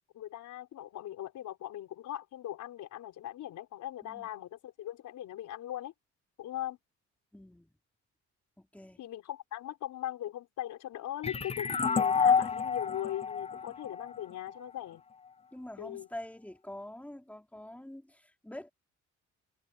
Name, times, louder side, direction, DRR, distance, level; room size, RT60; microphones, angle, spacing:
voice 1, 0.0-5.9 6.4-6.8 9.0-15.0 15.8-16.1, left 12 dB, 80° left, 4.3 m, -40 dB
voice 2, 7.3-7.8 8.6-9.0 15.5-18.7, left 1 dB, 5° left, 4.6 m, -46 dB
sound 1, 11.2-14.7, left 6 dB, 20° left, 0.5 m, -29 dB
cardioid pair, 90°, 30 cm